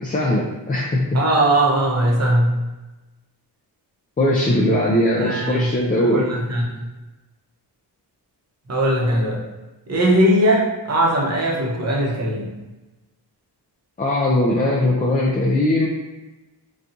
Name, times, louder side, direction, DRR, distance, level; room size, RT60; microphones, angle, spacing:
voice 1, 0.0-1.2 4.2-6.2 14.0-15.9, left 1 dB, 20° left, -4 dB, 0.4 m, -20 dB
voice 2, 1.1-2.5 5.2-5.7 6.1-6.9 8.7-9.4 9.9-12.5, right 1 dB, 40° right, -2 dB, 0.8 m, -19 dB
4.1 x 2.3 x 2.5 m, 1.1 s
wide cardioid pair, 100°, 41 cm